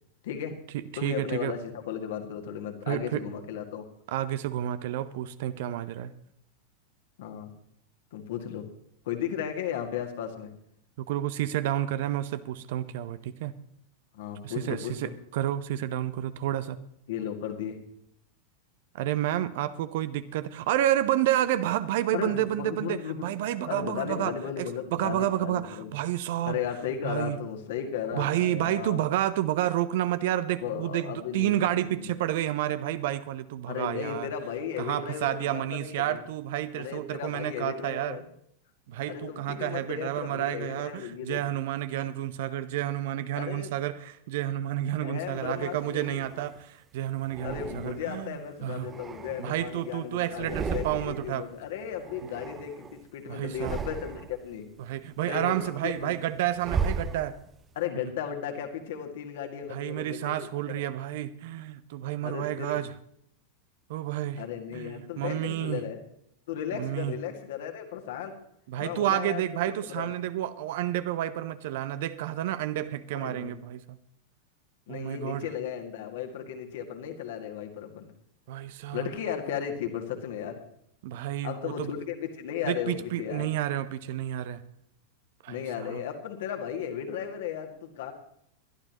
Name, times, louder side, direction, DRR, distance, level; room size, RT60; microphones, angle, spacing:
voice 1, 0.2-0.6 1.0-3.9 7.2-7.5 8.1-8.7 9.1-10.5 14.1-15.1 17.1-17.8 22.1-23.3 23.6-25.9 26.4-29.1 30.6-32.1 33.7-36.2 36.7-38.2 39.1-41.4 43.3-43.8 45.0-46.2 47.4-54.7 55.2-56.1 57.8-60.8 62.2-62.8 64.4-66.0 66.5-68.4 68.8-70.1 73.1-73.5 74.9-78.1 78.9-80.6 81.4-83.5 85.5-88.1, left 8 dB, 55° left, 4 dB, 2.1 m, -35 dB
voice 2, 0.7-1.6 2.9-3.3 4.1-6.1 11.0-13.5 14.4-16.8 18.9-26.6 27.0-27.4 28.1-34.3 34.8-38.2 38.9-48.9 49.4-51.5 53.3-53.8 54.8-57.4 59.7-62.9 63.9-64.4 64.7-65.8 66.7-67.1 68.7-74.0 74.9-75.5 78.5-79.1 81.0-81.9 82.6-84.6 85.4-86.1, right 13 dB, 50° right, 14 dB, 0.8 m, -30 dB
sound 1, 45.4-46.6 47.3-48.2 48.7-50.0 50.3-51.4 51.6-53.0 53.4-54.5 54.9-57.7, right 5 dB, 20° right, 0.8 m, -36 dB
22.0 x 12.0 x 3.0 m, 0.69 s
figure-of-eight pair, 90°, 0 cm